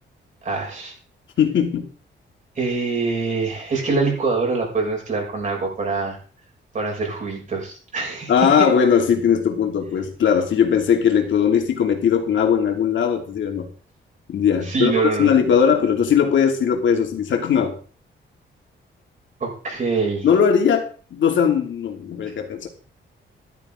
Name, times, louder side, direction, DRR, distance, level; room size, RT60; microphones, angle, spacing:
voice 1, 0.4-0.9 2.5-6.2 6.7-8.5 14.6-15.3 19.4-20.3, right 4 dB, 40° right, 0 dB, 6.5 m, -24 dB
voice 2, 1.4-1.9 8.3-13.7 14.3-17.8 20.2-22.7, left 7 dB, 75° left, 3 dB, 2.8 m, -19 dB
14.0 x 12.0 x 3.9 m, 0.39 s
wide cardioid pair, 145°, 20 cm